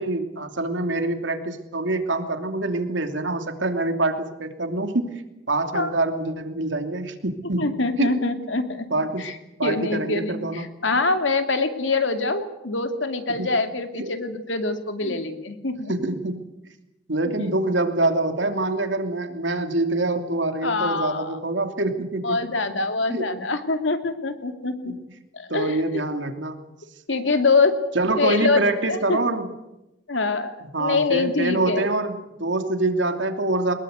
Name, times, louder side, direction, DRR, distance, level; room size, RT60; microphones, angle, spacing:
voice 1, 0.0-5.1 5.5-8.1 8.9-9.2 9.6-10.7 13.3-13.6 14.0-14.1 15.0-15.2 15.9-16.4 17.1-22.4 23.1-23.3 24.8-25.0 25.5-26.6 27.9-29.5 30.6-33.7, right 2 dB, 80° right, 6 dB, 2.9 m, -25 dB
voice 2, 7.6-8.9 9.2-9.3 9.6-15.9 17.4-17.5 20.6-21.4 22.2-24.9 25.3-26.0 27.1-27.7 28.2-28.6 28.9-29.2 30.1-30.5 30.8-31.8, left 3 dB, 85° left, 7 dB, 2.6 m, -24 dB
23.5 x 21.0 x 8.1 m, 0.94 s
head